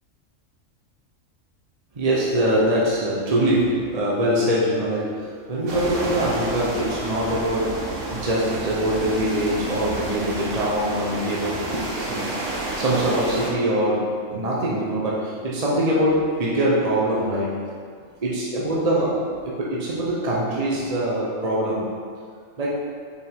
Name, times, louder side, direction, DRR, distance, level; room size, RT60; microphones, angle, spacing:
voice 1, 2.0-12.4 12.7-17.6 18.2-21.9 22.6-22.7, right 1 dB, 35° right, -5 dB, 0.8 m, -23 dB
sound 1, 5.7-13.5, right 2 dB, 70° right, 1.2 m, -30 dB
6.6 x 4.5 x 3.6 m, 2.1 s
omnidirectional pair, 1.3 m